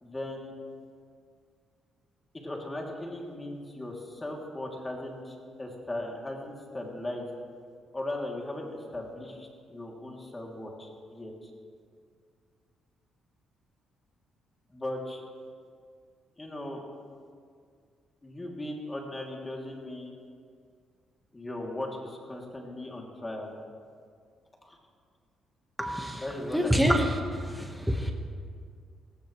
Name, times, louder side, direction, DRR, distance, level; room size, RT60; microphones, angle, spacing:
voice 1, 0.0-0.5 2.3-7.3 7.9-11.5 14.7-15.2 16.4-16.8 18.2-20.2 21.3-23.5 24.6-24.8 26.2-27.0, left 1 dB, 20° left, -1 dB, 3.1 m, -38 dB
voice 2, 25.8-26.2 26.5-27.1 27.4-28.1, equal, ahead, 3 dB, 1.6 m, -26 dB
18.0 x 17.0 x 3.3 m, 2.1 s
cardioid pair, 90°, 0 cm